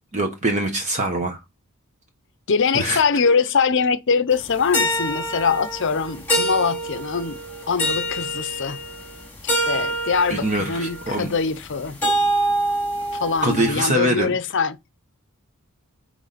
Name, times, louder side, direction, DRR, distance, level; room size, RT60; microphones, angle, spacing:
voice 1, 0.1-1.4 2.7-3.0 10.3-11.3 13.4-14.3, right 1 dB, 35° right, 1.0 m, -23 dB
voice 2, 2.5-7.4 7.7-8.8 9.4-12.0 13.2-14.8, left 5 dB, 55° left, 0.6 m, -22 dB
sound 1, 4.4-13.7, right 1 dB, 10° left, 2.5 m, -26 dB
9.3 x 3.2 x 4.1 m
head